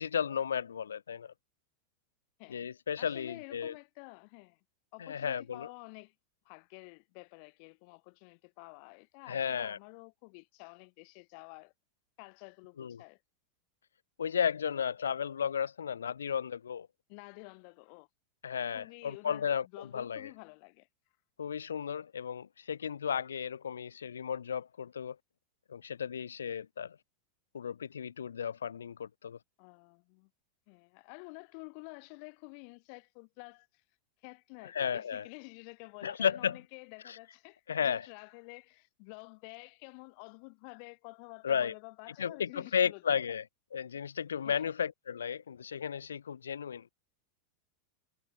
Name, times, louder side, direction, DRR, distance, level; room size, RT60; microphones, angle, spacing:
voice 1, 0.0-1.3 2.5-3.7 5.0-5.7 9.3-9.8 12.8-13.0 14.2-16.9 18.4-20.3 21.4-25.2 25.7-27.0 27.5-29.4 34.7-35.3 36.0-36.6 37.0-37.2 37.7-38.0 41.4-41.7 42.2-43.4 43.7-46.9, left 7 dB, 70° left, 3.2 m, -34 dB
voice 2, 3.0-4.6 4.9-6.1 6.4-11.7 12.2-13.2 17.1-18.1 18.7-19.5 19.7-20.9 29.6-30.3 30.7-33.8 34.2-43.2 44.4-44.7, left 40 dB or more, 45° left, 5.6 m, -50 dB
figure-of-eight pair, 90°, 0 cm